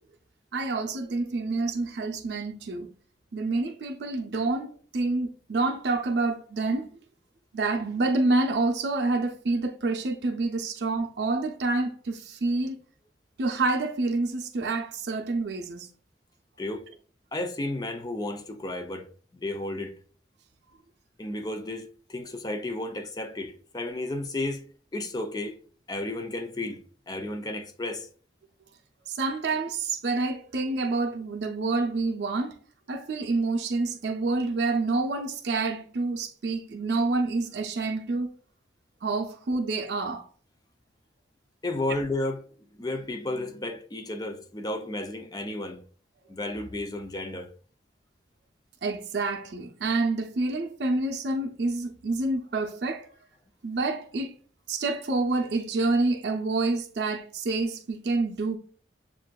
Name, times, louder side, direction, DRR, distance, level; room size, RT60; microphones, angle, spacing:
voice 1, 0.5-2.9 3.3-6.9 7.5-12.8 13.4-15.9 29.1-32.5 32.9-38.3 39.0-40.2 48.8-53.1 53.6-54.3 54.7-58.6, right 3 dB, 70° right, 0.5 m, -28 dB
voice 2, 17.3-19.1 19.3-19.9 21.2-24.6 24.9-25.6 25.9-26.8 27.1-28.1 41.6-42.5 42.8-45.8 46.3-47.5, left 2 dB, 20° left, 0.4 m, -32 dB
7.2 x 2.5 x 2.2 m
head